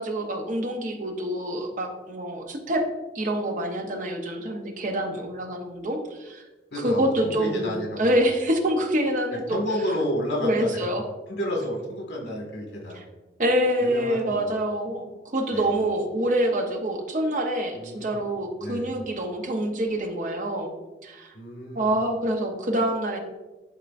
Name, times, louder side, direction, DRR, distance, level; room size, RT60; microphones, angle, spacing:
voice 1, 0.0-2.9 3.1-6.4 6.8-9.6 10.4-11.1 12.9-13.0 13.4-20.7 21.0-21.3 21.7-23.2, right 1 dB, 45° right, 4 dB, 0.7 m, -26 dB
voice 2, 6.7-8.3 9.3-10.8 11.3-13.0 13.8-14.5 15.5-15.7 17.8-18.2 18.6-18.9 21.3-22.0, equal, 85° left, 0 dB, 1.7 m, -31 dB
11.0 x 3.7 x 2.5 m, 1.2 s
head